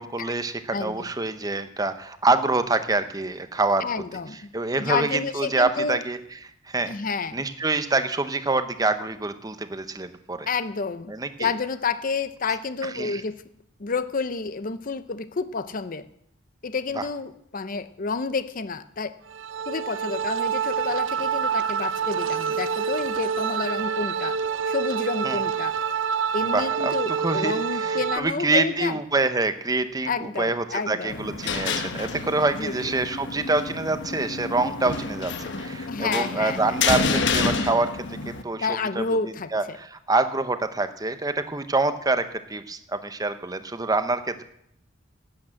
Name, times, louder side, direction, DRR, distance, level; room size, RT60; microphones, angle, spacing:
voice 1, 0.0-3.9 4.5-6.2 6.7-6.9 7.3-10.5 11.1-11.5 13.0-13.2 25.2-25.4 26.5-35.3 35.6-37.9 38.3-39.0 39.5-42.2 42.5-44.4, right 3 dB, 20° right, 10 dB, 0.8 m, -26 dB
voice 2, 0.7-1.1 3.8-4.5 4.8-6.0 6.9-7.4 10.5-11.1 11.4-13.4 13.8-16.1 16.6-19.2 19.7-24.4 24.7-25.7 26.3-29.0 30.1-31.2 32.6-32.8 35.9-36.8 38.6-39.8, left 4 dB, 45° left, 13 dB, 0.7 m, -29 dB
sound 1, 19.3-28.2, right 7 dB, 70° right, 0.5 m, -27 dB
sound 2, 31.1-38.4, left 4 dB, 65° left, 1.1 m, -29 dB
12.0 x 8.7 x 7.6 m, 0.75 s
head